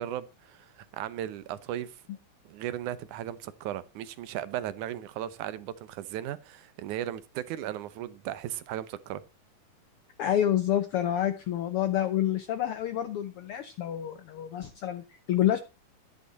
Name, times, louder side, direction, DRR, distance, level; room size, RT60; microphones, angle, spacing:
voice 1, 0.0-2.0 2.5-9.2, right 12 dB, 80° right, 2.3 m, -36 dB
voice 2, 10.2-15.6, left 11 dB, 70° left, 1.3 m, -28 dB
11.5 x 10.5 x 4.1 m
omnidirectional pair, 3.6 m